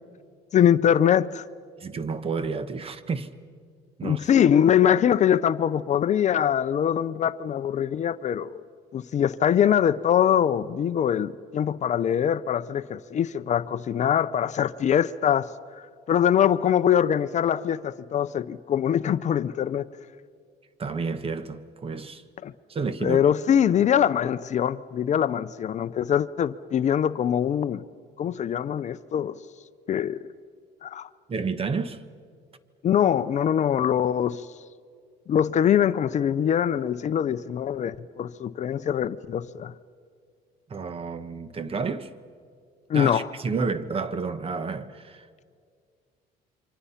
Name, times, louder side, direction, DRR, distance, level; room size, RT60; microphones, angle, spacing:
voice 1, 0.5-1.4 4.0-8.6 8.9-15.5 16.1-19.9 22.4-22.5 23.0-27.8 28.2-29.4 29.9-30.2 30.8-31.1 32.8-34.5 35.3-39.7 42.9-43.3, left 9 dB, 45° left, 0.6 m, -23 dB
voice 2, 1.8-3.3 4.0-4.3 20.8-22.2 22.7-23.2 31.3-32.0 40.7-42.1 42.9-45.4, right 4 dB, 35° right, 1.2 m, -30 dB
28.5 x 24.5 x 5.7 m
cardioid pair, 110°, 17 cm